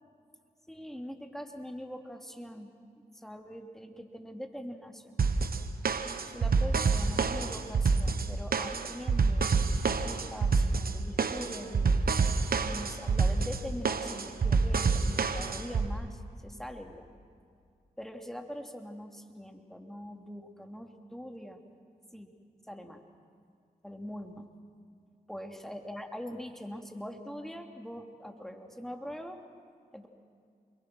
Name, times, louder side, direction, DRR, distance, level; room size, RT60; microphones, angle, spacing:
voice 1, 0.7-5.1 6.3-9.5 9.9-12.0 12.6-17.1 18.0-21.6 22.1-22.3 22.7-23.0 23.8-24.5 25.3-29.4 29.9-30.1, equal, ahead, 3 dB, 2.9 m, -43 dB
sound 1, 5.2-15.9, right 4 dB, 65° right, 1.3 m, -27 dB
29.0 x 22.5 x 6.3 m, 2.2 s
cardioid pair, 45°, 16 cm